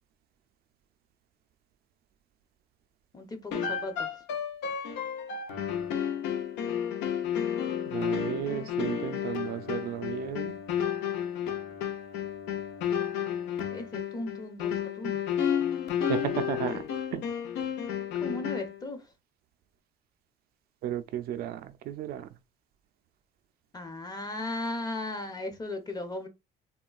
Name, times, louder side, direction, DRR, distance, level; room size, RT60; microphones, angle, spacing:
voice 1, 3.1-4.1 13.7-15.2 18.2-19.0 23.7-26.3, left 2 dB, 25° left, 0.7 m, -36 dB
sound 1, 3.5-18.8, left 9 dB, 85° left, 0.6 m, -32 dB
voice 2, 7.9-10.6 16.1-17.3 20.8-22.3, right 10 dB, 65° right, 0.4 m, -34 dB
3.6 x 2.2 x 2.3 m
cardioid pair, 110°, 17 cm